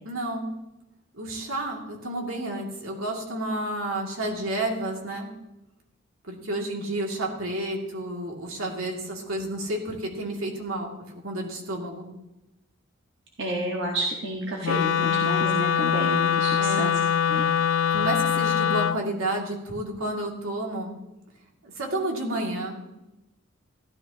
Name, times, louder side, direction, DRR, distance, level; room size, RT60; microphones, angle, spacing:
voice 1, 0.0-0.5 1.1-5.3 6.2-12.1 16.6-17.0 17.9-21.0 21.6-22.8, right 1 dB, 90° right, 0 dB, 2.5 m, -31 dB
voice 2, 13.4-16.9 17.3-17.5, right 1 dB, 60° right, -1 dB, 1.4 m, -30 dB
Wind instrument woodwind instrument, 14.6-19.0, left 8 dB, 70° left, 0.3 m, -23 dB
15.0 x 12.0 x 2.9 m, 0.95 s
head